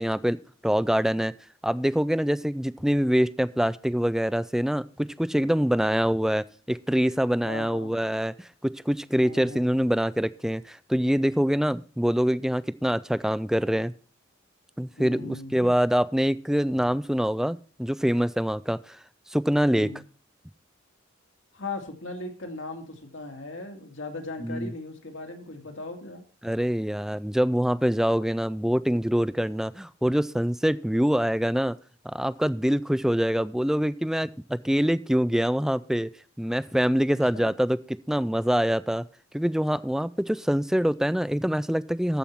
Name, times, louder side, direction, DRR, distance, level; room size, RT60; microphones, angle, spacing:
voice 1, 0.0-1.3 1.6-13.9 14.8-19.0 19.3-19.9 24.4-24.7 26.4-31.8 32.0-36.1 36.4-39.0 39.3-42.2, equal, ahead, 16 dB, 0.4 m, -25 dB
voice 2, 7.5-8.1 9.2-9.6 15.0-15.7 19.7-20.0 21.5-26.2 37.1-37.5, left 2 dB, 65° left, 4 dB, 2.2 m, -38 dB
14.0 x 5.7 x 4.5 m, 0.40 s
head